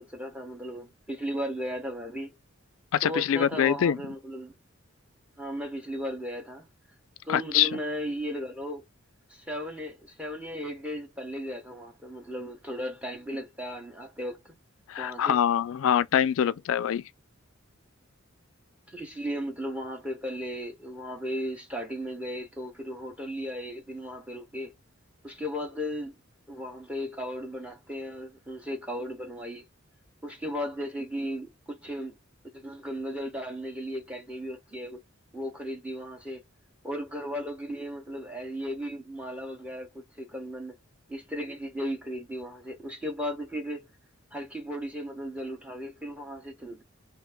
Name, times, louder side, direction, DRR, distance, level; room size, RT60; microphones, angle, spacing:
voice 1, 0.0-2.3 3.0-4.5 5.4-6.6 7.2-8.8 9.3-14.5 15.0-15.4 18.9-24.7 25.2-26.1 26.5-29.6 30.2-32.2 32.5-35.0 35.3-36.4 36.8-40.7 41.1-43.8 44.3-46.8, equal, 5° right, 1.2 m, -36 dB
voice 2, 2.9-4.0 7.3-7.7 14.9-17.0, left 9 dB, 70° left, 0.3 m, -24 dB
3.0 x 2.9 x 3.4 m
head